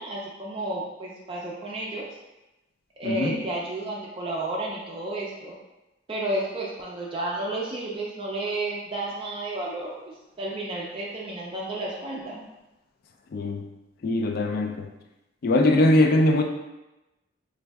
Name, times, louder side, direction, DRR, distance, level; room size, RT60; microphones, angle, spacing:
voice 1, 0.0-2.1 3.0-5.5 6.1-12.4, right 2 dB, 25° right, -4 dB, 0.4 m, -32 dB
voice 2, 3.0-3.4 13.3-13.6 14.0-14.9 15.4-16.4, left 1 dB, 50° left, 5 dB, 0.3 m, -21 dB
4.0 x 2.5 x 2.3 m, 0.99 s
head